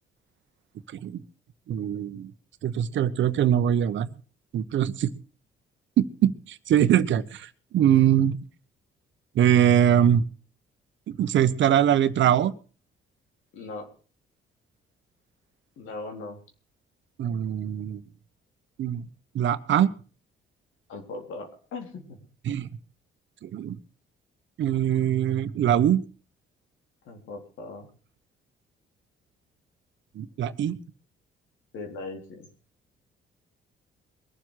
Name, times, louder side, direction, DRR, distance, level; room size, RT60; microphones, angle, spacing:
voice 1, 1.7-2.3 2.6-4.1 4.5-5.1 6.0-7.5 7.7-8.4 9.3-10.2 11.1-12.5 17.2-18.0 18.8-19.1 19.3-19.9 22.4-22.7 23.4-23.8 24.6-26.0 30.2-30.8, right 10 dB, 70° right, 13 dB, 1.1 m, -22 dB
voice 2, 13.5-13.9 15.8-16.4 20.9-22.2 27.1-27.9 31.7-32.5, left 3 dB, 85° left, 3 dB, 3.8 m, -39 dB
22.5 x 7.5 x 6.5 m, 0.39 s
cardioid pair, 90°, 20 cm